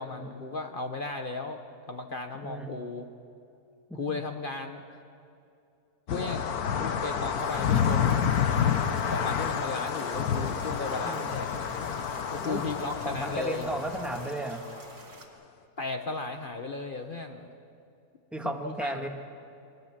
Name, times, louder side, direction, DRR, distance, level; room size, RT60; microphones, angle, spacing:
voice 1, 0.0-1.6 1.9-3.1 4.0-4.8 6.1-8.3 9.1-11.6 12.3-13.6 15.8-17.5 18.4-19.1, left 3 dB, 40° left, 6 dB, 1.0 m, -35 dB
voice 2, 3.9-4.2 11.0-11.3 12.4-12.7 13.0-14.7 18.3-19.1, right 1 dB, ahead, 3 dB, 1.5 m, -35 dB
sound 1, 6.1-14.9, left 7 dB, 70° left, 1.5 m, -29 dB
sound 2, 7.4-15.3, right 3 dB, 90° right, 2.5 m, -49 dB
24.0 x 19.0 x 7.4 m, 2.7 s
omnidirectional pair, 1.7 m